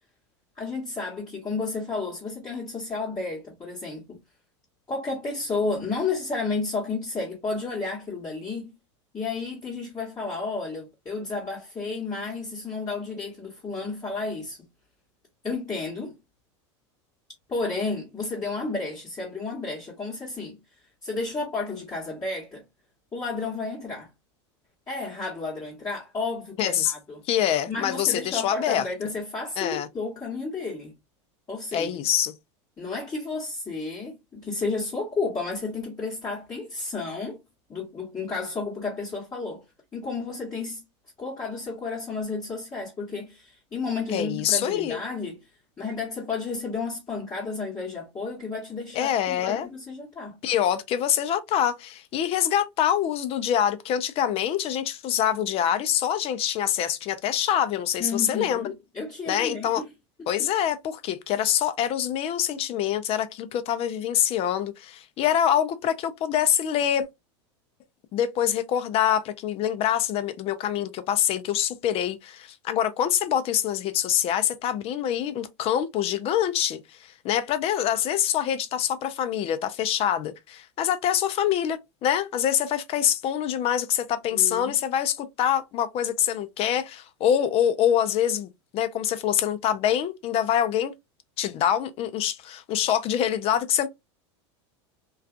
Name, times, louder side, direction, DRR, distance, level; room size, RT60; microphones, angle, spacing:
voice 1, 0.6-4.2 4.9-8.7 9.1-14.7 15.4-16.2 17.5-20.6 21.0-22.6 23.1-24.1 24.9-27.2 27.7-31.0 31.5-32.0 32.8-37.4 37.7-39.6 39.9-40.8 41.2-45.4 45.8-50.4 58.0-59.8 84.3-84.7, left 3 dB, 20° left, 1.0 m, -32 dB
voice 2, 26.6-26.9 27.3-28.8 29.6-29.9 31.7-32.3 44.1-45.0 48.9-49.7 50.4-58.6 59.3-59.8 60.3-67.1 68.1-90.9 91.4-93.9, left 10 dB, 40° left, 0.5 m, -25 dB
2.4 x 2.3 x 2.3 m
hypercardioid pair, 105°, 15 cm